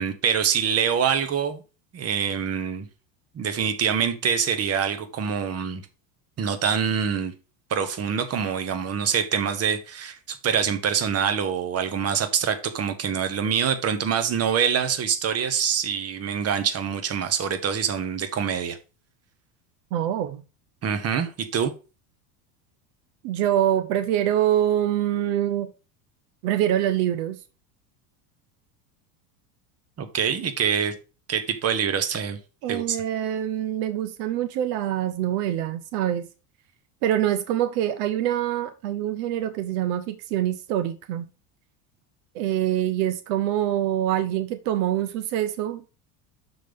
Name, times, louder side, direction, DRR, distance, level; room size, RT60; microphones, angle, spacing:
voice 1, 0.0-1.6 1.9-2.9 3.3-5.8 6.4-7.3 7.7-18.8 20.8-21.7 30.0-30.9 31.3-32.4 32.7-33.0, right 7 dB, 30° right, 1.1 m, -25 dB
voice 2, 19.9-20.4 23.2-25.7 26.4-27.4 32.6-36.3 37.0-41.3 42.3-46.0, right 11 dB, 70° right, 0.9 m, -25 dB
6.4 x 4.1 x 5.1 m
supercardioid pair, 110°, 48 cm